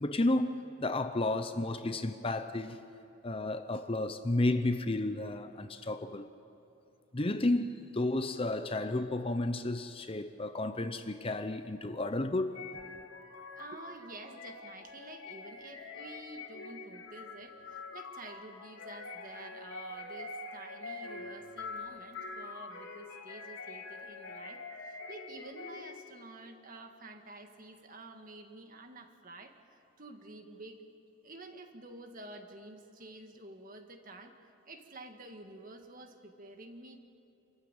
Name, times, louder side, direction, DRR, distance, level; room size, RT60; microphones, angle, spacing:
voice 1, 0.0-2.8 3.2-6.3 7.1-12.5, left 2 dB, 25° left, 0.7 m, -32 dB
sound 1, 12.5-26.2, left 3 dB, 70° left, 2.7 m, -45 dB
voice 2, 13.6-30.8 31.2-37.0, right 2 dB, 40° right, 1.8 m, -50 dB
27.5 x 15.0 x 9.0 m
head